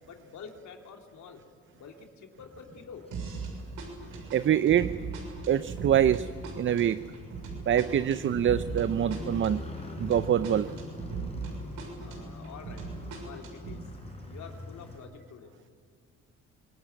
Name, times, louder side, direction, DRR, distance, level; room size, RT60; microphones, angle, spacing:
voice 1, 0.0-1.4 1.7-3.0 12.0-12.8 13.2-13.8 14.2-15.5, left 6 dB, 70° left, 3 dB, 3.2 m, -47 dB
Motorcycle, 2.4-15.0, left 2 dB, 20° left, 4.6 m, -45 dB
sound 1, 3.1-3.5 3.8-11.5 11.8-13.8, right 5 dB, 90° right, 6.6 m, -38 dB
voice 2, 4.3-5.0 5.5-7.1 7.7-9.6 10.0-10.7, right 10 dB, 40° right, 14 dB, 0.6 m, -25 dB
25.5 x 20.0 x 8.9 m, 2.2 s
cardioid pair, 90°, 30 cm